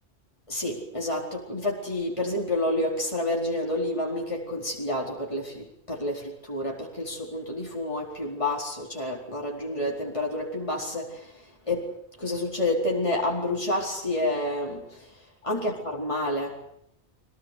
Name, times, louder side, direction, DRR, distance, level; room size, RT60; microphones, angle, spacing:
voice 1, 0.5-16.7, left 1 dB, 30° left, -2 dB, 4.6 m, -29 dB
24.5 x 18.0 x 9.4 m, 0.69 s
omnidirectional pair, 1.1 m